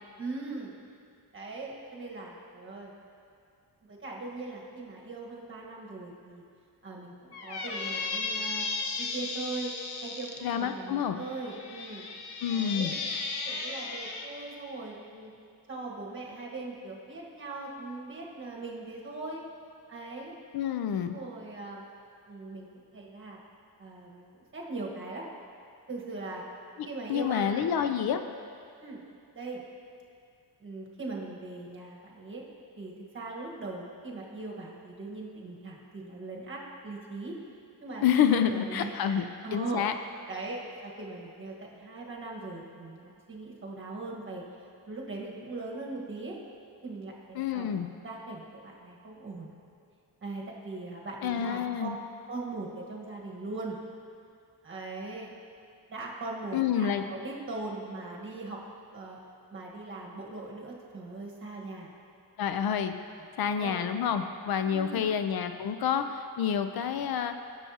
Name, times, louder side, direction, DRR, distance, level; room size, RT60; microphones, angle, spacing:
voice 1, 0.2-0.7 1.3-2.9 3.8-6.4 6.8-8.7 9.0-9.7 10.0-12.1 12.5-13.0 13.4-15.3 15.7-19.4 19.9-20.3 21.0-21.8 22.3-23.4 23.8-25.3 25.9-26.4 26.8-27.7 28.8-29.0 29.3-29.6 30.6-32.5 32.8-37.4 37.8-38.0 38.3-39.8 40.3-46.4 46.8-47.7 48.0-49.5 50.2-51.9 52.3-53.8 54.6-55.3 55.9-58.6 58.9-59.2 59.5-61.9 63.0-63.9 64.6-65.2, right 3 dB, 30° right, -2 dB, 1.4 m, -40 dB
Squeak, 7.3-10.4 11.2-14.3, left 4 dB, 85° left, 0.9 m, -35 dB
voice 2, 10.4-11.2 12.4-12.9 20.5-21.1 26.8-28.2 38.0-39.9 47.4-47.9 51.2-52.0 56.5-57.0 62.4-63.0 63.4-67.3, left 8 dB, 65° left, 8 dB, 0.5 m, -28 dB
14.5 x 7.0 x 2.8 m, 2.4 s
wide cardioid pair, 145°, 39 cm